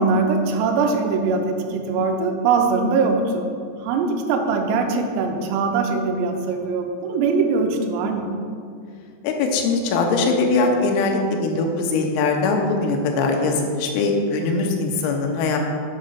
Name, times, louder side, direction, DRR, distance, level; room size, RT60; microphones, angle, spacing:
voice 1, 0.0-3.5 3.8-8.3, right 4 dB, 85° right, 3 dB, 3.4 m, -21 dB
voice 2, 9.2-15.6, left 3 dB, 85° left, 2 dB, 3.6 m, -21 dB
8.6 x 5.1 x 5.7 m, 2.3 s
omnidirectional pair, 5.9 m